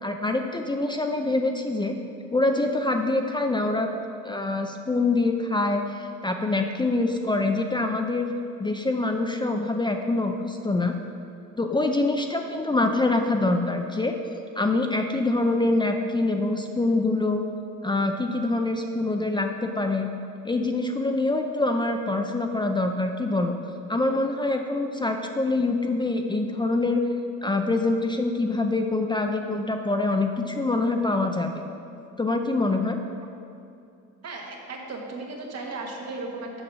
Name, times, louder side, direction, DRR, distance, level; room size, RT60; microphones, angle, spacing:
voice 1, 0.0-1.9 2.3-3.9 4.2-8.3 8.6-10.9 11.6-14.1 14.6-17.4 17.8-20.1 20.4-23.6 23.9-27.0 27.4-31.5 32.2-33.0, left 2 dB, 15° left, 4 dB, 0.5 m, -25 dB
voice 2, 34.2-36.6, right 3 dB, 55° right, 0 dB, 1.5 m, -36 dB
7.0 x 5.2 x 6.2 m, 2.6 s
cardioid pair, 90°, 30 cm